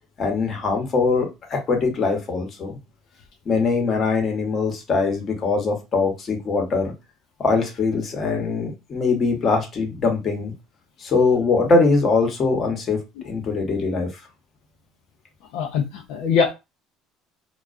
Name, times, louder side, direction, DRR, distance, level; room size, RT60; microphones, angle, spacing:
voice 1, 0.2-2.8 3.5-6.9 7.4-10.5 11.0-13.0 13.2-14.1, left 4 dB, 45° left, 4 dB, 0.9 m, -22 dB
voice 2, 15.5-16.5, left 6 dB, 75° left, 2 dB, 0.4 m, -22 dB
2.3 x 2.2 x 2.5 m, 0.24 s
supercardioid pair, 85°, 0 cm